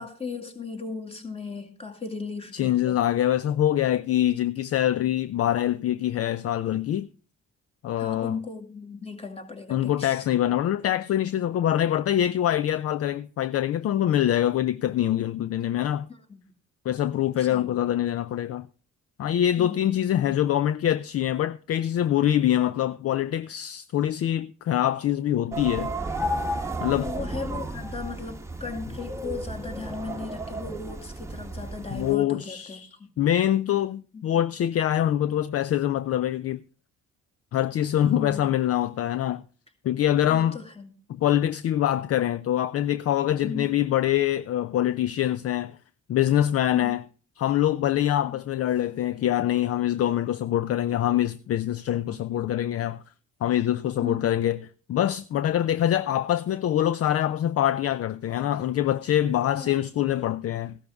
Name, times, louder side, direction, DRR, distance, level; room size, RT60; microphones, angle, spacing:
voice 1, 0.0-3.0 8.0-10.2 16.1-16.4 17.4-17.7 19.6-19.9 27.0-33.1 34.1-34.4 38.0-38.5 40.3-40.9 43.4-43.7 46.7-47.0 48.3-48.4 54.0-54.2 59.5-59.9, left 4 dB, 20° left, 2.2 m, -37 dB
voice 2, 2.5-7.1 7.8-8.4 9.7-16.1 16.9-18.7 19.2-25.9 26.8-27.1 31.9-32.9 33.2-36.6 37.5-39.4 39.8-40.6 41.1-45.8 46.1-47.0 47.4-53.0 53.4-54.6 54.9-60.8, left 11 dB, 50° left, 0.5 m, -24 dB
sound 1, 25.5-32.2, right 1 dB, 10° right, 1.1 m, -33 dB
14.5 x 12.0 x 3.5 m
cardioid pair, 90°, 30 cm